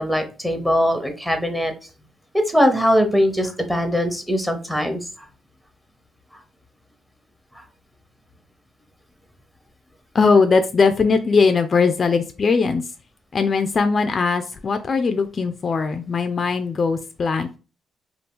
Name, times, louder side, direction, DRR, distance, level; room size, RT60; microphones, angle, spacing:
voice 1, 0.0-1.7 2.3-5.3 7.5-7.6, equal, 5° right, 6 dB, 0.7 m, -21 dB
voice 2, 10.1-12.9 13.3-17.6, left 4 dB, 40° left, 8 dB, 0.3 m, -20 dB
2.8 x 2.4 x 3.5 m, 0.34 s
cardioid pair, 90°, 0 cm